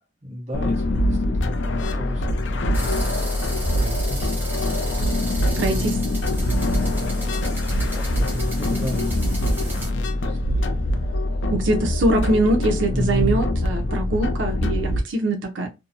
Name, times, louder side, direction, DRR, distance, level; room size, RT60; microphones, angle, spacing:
voice 1, 0.2-3.2 3.7-4.4 5.1-10.8 12.9-13.4, left 1 dB, 40° right, 1.0 m, -33 dB
sound 1, 0.5-15.0, left 1 dB, 80° left, 0.5 m, -23 dB
sound 2, 2.7-9.9, right 2 dB, 10° right, 0.8 m, -36 dB
voice 2, 5.6-5.9 11.5-15.7, right 1 dB, 85° right, 0.5 m, -23 dB
2.6 x 2.0 x 2.4 m
head